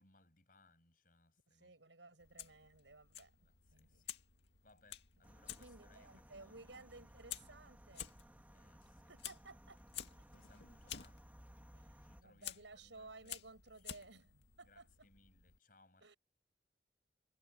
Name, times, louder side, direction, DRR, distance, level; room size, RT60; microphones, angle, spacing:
voice 1, 0.0-1.7 3.4-4.1 4.6-7.6 8.5-9.1 10.3-11.3 12.0-14.3 14.6-16.2, left 2 dB, 50° left, 8.0 m, -69 dB
voice 2, 1.5-3.3 3.7-4.1 5.6-8.1 9.1-9.8 10.2-10.3 10.7-10.8 11.7-15.1 16.0-16.2, right 3 dB, 80° right, 5.5 m, -57 dB
Fire, 2.2-15.6, left 10 dB, 70° left, 1.9 m, -53 dB
sound 1, 5.2-12.2, equal, 10° right, 2.2 m, -61 dB
head